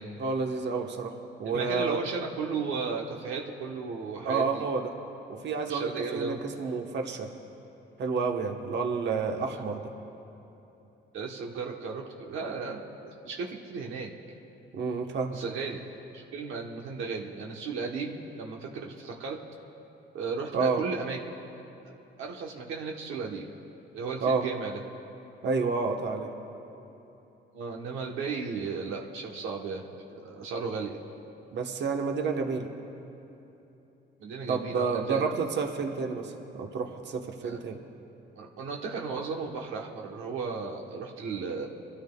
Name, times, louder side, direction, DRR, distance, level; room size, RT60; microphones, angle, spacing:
voice 1, 0.2-2.0 4.2-4.9 5.3-7.3 8.0-9.8 14.7-15.4 20.5-20.8 24.2-24.5 25.4-26.3 31.5-32.7 34.5-37.8, right 4 dB, 60° right, 3 dB, 1.1 m, -30 dB
voice 2, 1.4-4.6 5.7-6.4 9.5-9.6 11.1-14.1 15.3-15.8 16.1-19.4 20.1-21.2 22.2-23.5 23.9-24.8 27.5-31.0 34.2-35.3 37.4-37.6 38.3-41.7, right 4 dB, 85° right, 0 dB, 1.0 m, -35 dB
27.0 x 13.0 x 2.3 m, 3.0 s
cardioid pair, 90°, 20 cm